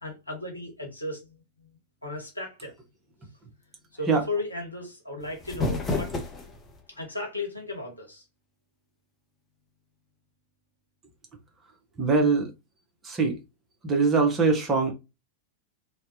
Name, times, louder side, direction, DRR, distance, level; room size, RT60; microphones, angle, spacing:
voice 1, 0.0-1.4 2.0-2.7 3.9-6.1 6.9-8.2, left 2 dB, 85° left, 0.8 m, -35 dB
sound 1, 5.2-6.8, left 2 dB, 15° left, 0.7 m, -31 dB
voice 2, 12.0-12.5 13.0-13.4 13.8-14.9, right 4 dB, 20° right, 0.8 m, -22 dB
2.7 x 2.2 x 2.6 m
figure-of-eight pair, 90°, 0 cm